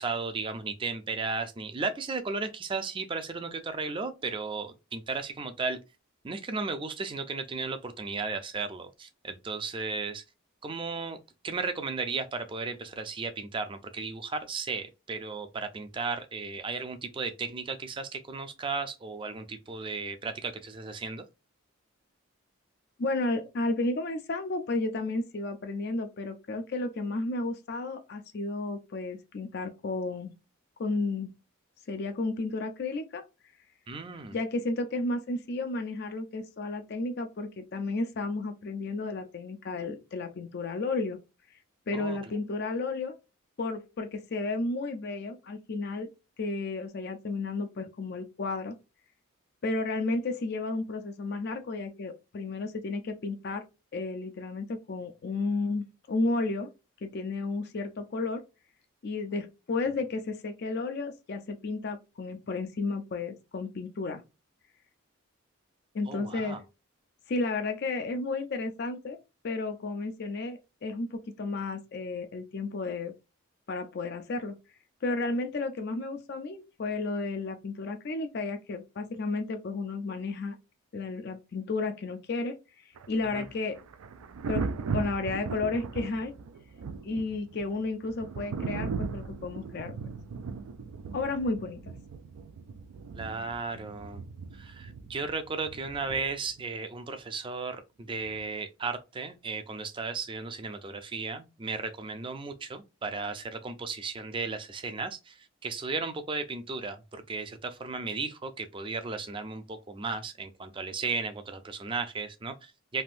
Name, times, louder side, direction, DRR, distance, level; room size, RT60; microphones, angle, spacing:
voice 1, 0.0-5.8 6.2-10.2 10.6-11.2 11.4-21.2 33.9-34.4 41.9-42.2 66.1-66.6 83.3-83.5 93.1-94.2 94.5-113.0, right 4 dB, 25° right, 0.4 m, -35 dB
voice 2, 23.0-30.3 30.8-31.3 31.9-33.2 34.3-41.2 41.9-43.1 43.6-46.1 46.4-48.8 49.6-53.6 53.9-56.7 57.0-58.4 59.0-64.2 65.9-66.6 67.3-69.2 69.4-73.1 73.7-74.6 75.0-80.6 80.9-82.6 83.1-83.8 84.5-86.3 87.0-89.9 91.1-91.9, left 3 dB, 50° left, 0.4 m, -32 dB
Thunder, 83.0-96.6 98.2-98.5, right 5 dB, 90° right, 0.4 m, -38 dB
3.4 x 2.6 x 2.5 m
head